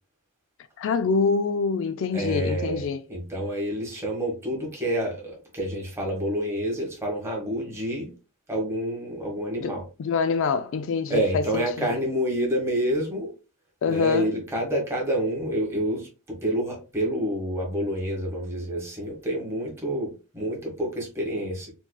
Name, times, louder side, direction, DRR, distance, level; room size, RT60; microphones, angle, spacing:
voice 1, 0.8-3.0 9.6-11.9 13.8-14.3, left 5 dB, 60° left, 0.3 m, -25 dB
voice 2, 2.1-8.1 8.5-9.8 11.1-13.3 13.9-21.7, equal, 10° right, 1.4 m, -28 dB
4.4 x 2.9 x 2.2 m
head